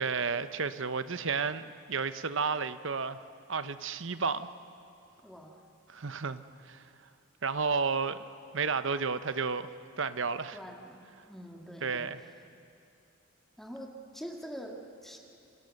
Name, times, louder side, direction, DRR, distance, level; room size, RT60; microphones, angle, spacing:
voice 1, 0.0-3.2 3.5-4.5 5.9-6.8 7.4-8.3 8.5-9.7 10.0-10.6 11.8-12.2, right 5 dB, 60° right, 12 dB, 0.9 m, -32 dB
voice 2, 5.2-5.6 10.5-12.1 13.6-15.2, equal, ahead, 0 dB, 2.0 m, -45 dB
29.5 x 24.5 x 6.6 m, 2.6 s
head